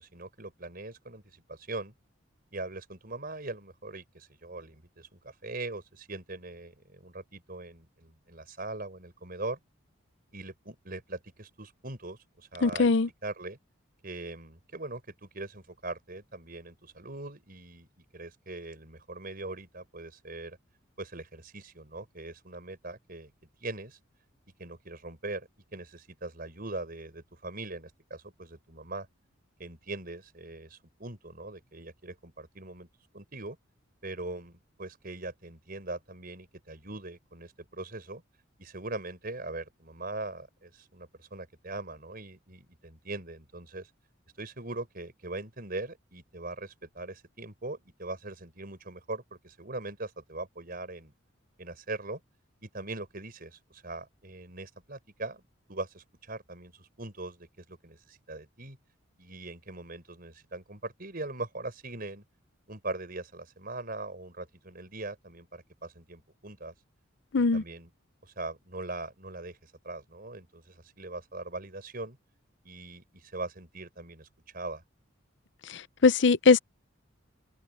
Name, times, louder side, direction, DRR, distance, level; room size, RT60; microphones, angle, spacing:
voice 1, 0.0-1.9 2.5-9.6 10.3-12.9 13.2-13.6 14.0-17.9 18.1-20.6 21.0-23.3 23.6-24.0 24.6-29.1 29.6-32.9 33.1-33.6 34.0-38.2 38.6-43.9 44.4-51.1 51.6-52.2 52.6-55.4 55.7-58.8 59.2-62.2 62.7-66.7 67.3-67.9 68.2-72.2 72.6-74.3 74.5-74.8, right 2 dB, 45° right, 5.0 m, -41 dB
voice 2, 12.6-13.1 67.3-67.6 76.0-76.6, left 4 dB, 60° left, 0.6 m, -20 dB
head